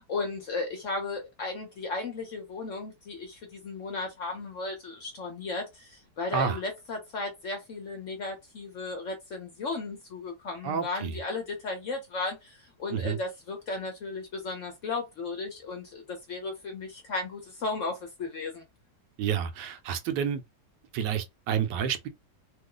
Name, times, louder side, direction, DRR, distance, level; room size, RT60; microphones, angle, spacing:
voice 1, 0.0-18.7, left 3 dB, 55° left, 0.9 m, -35 dB
voice 2, 10.6-11.2 12.9-13.2 19.2-20.4 20.9-22.1, right 8 dB, 75° right, 1.2 m, -29 dB
3.0 x 2.0 x 3.7 m
omnidirectional pair, 1.9 m